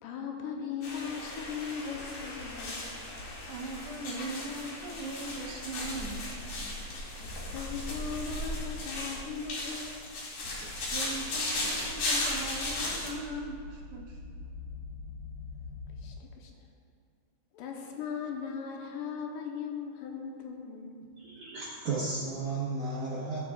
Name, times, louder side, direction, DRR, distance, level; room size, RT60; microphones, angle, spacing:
voice 1, 0.0-2.8 7.1-10.0 15.9-16.5 17.5-21.0, left 6 dB, 85° left, 1 dB, 2.9 m, -38 dB
sound 1, 0.8-13.1, left 2 dB, 60° left, 3.6 m, -36 dB
voice 2, 3.5-6.3 10.6-14.2, right 2 dB, 80° right, -3 dB, 3.0 m, -40 dB
sound 2, 10.7-16.1, left 2 dB, 25° left, 2.5 m, -45 dB
voice 3, 21.2-23.4, right 3 dB, 60° right, -8 dB, 2.4 m, -34 dB
21.0 x 7.1 x 2.4 m, 2.3 s
omnidirectional pair, 5.0 m